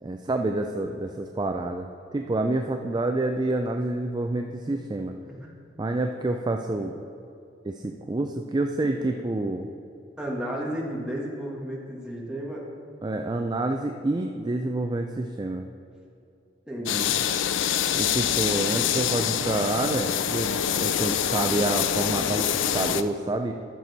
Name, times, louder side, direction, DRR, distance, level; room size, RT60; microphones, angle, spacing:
voice 1, 0.0-5.1 5.8-7.0 7.6-9.7 13.0-15.7 17.9-20.5 20.8-23.5, right 2 dB, 20° right, 4 dB, 0.4 m, -28 dB
voice 2, 10.2-12.6 16.7-17.1, equal, 5° right, -3 dB, 1.4 m, -33 dB
sound 1, 16.9-23.0, left 9 dB, 80° left, 0.4 m, -25 dB
14.0 x 6.0 x 4.1 m, 2.7 s
head